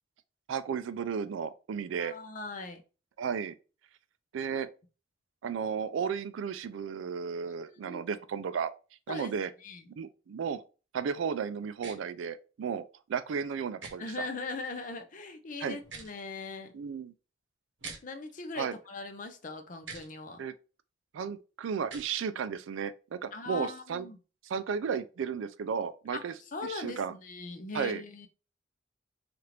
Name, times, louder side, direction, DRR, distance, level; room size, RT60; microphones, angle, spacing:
voice 1, 0.5-2.1 3.2-3.6 4.3-4.7 5.4-8.7 9.1-9.5 10.0-10.6 10.9-12.8 13.1-14.3 15.6-15.8 16.7-17.1 18.5-18.7 20.4-20.5 21.1-24.1 24.5-26.3 26.6-27.1 27.7-28.0, right 6 dB, 90° right, 0.4 m, -34 dB
voice 2, 2.0-2.8 7.7-8.1 9.1-9.3 9.6-9.8 14.0-16.7 18.0-20.4 23.3-24.2 26.1-28.3, left 3 dB, 45° left, 0.5 m, -40 dB
sound 1, 11.8-12.0 13.8-13.9 15.8-16.1 17.8-18.0 19.8-20.1 21.8-22.1, right 4 dB, 75° right, 0.8 m, -43 dB
3.3 x 2.5 x 2.9 m
head